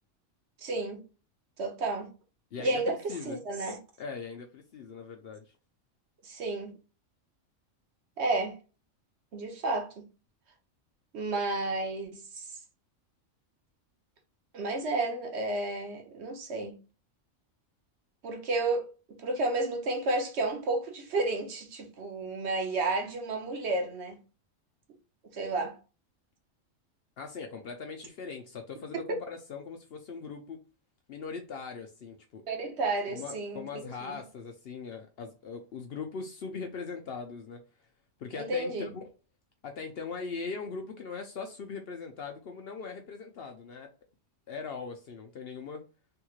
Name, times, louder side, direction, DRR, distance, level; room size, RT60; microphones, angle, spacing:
voice 1, 0.6-1.0 1.6-2.1 2.6-3.8 6.2-6.7 8.2-8.6 9.3-10.0 11.1-12.5 14.5-16.8 18.2-18.9 19.2-24.2 25.3-25.8 29.1-29.2 32.5-34.2 38.4-38.9, right 2 dB, 60° right, 1.0 m, -31 dB
voice 2, 2.5-3.4 4.0-5.4 27.2-30.6 31.1-32.4 33.1-37.6 38.2-39.0 39.6-43.9 44.5-45.8, left 5 dB, 60° left, 0.7 m, -40 dB
3.5 x 3.0 x 2.3 m
omnidirectional pair, 1.3 m